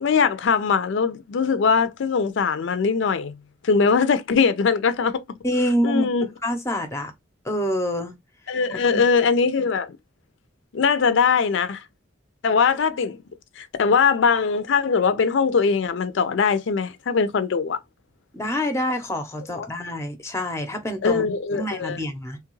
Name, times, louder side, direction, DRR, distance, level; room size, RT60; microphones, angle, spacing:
voice 1, 0.0-3.3 3.6-5.2 5.8-6.3 8.5-10.0 10.7-11.8 12.4-13.2 13.6-17.8 19.6-19.7 21.0-22.0, left 5 dB, 75° left, 0.4 m, -21 dB
voice 2, 5.4-6.1 6.4-7.1 7.4-8.2 8.7-9.0 18.3-21.3 21.5-22.4, equal, 15° left, 0.6 m, -26 dB
3.1 x 2.3 x 3.0 m
head